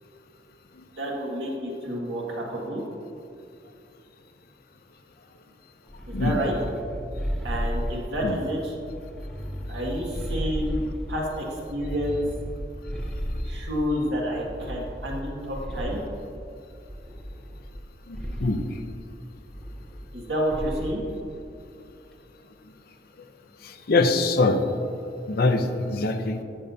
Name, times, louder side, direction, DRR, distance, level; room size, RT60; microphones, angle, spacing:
voice 1, 1.0-2.8 6.1-6.5 7.4-8.8 9.7-10.8 11.1-12.2 13.4-16.0 20.1-21.0, equal, 70° right, -3 dB, 1.8 m, -29 dB
sound 1, 5.9-8.3 8.8-11.2 11.7-13.9 14.4-16.2 16.9-17.8 18.1-18.6 19.5-20.2 20.5-21.0, equal, 5° left, 0.6 m, -34 dB
voice 2, 18.1-18.6 23.6-24.6 25.3-26.4, left 3 dB, 60° left, 7 dB, 0.6 m, -23 dB
12.0 x 6.8 x 2.7 m, 2.5 s
head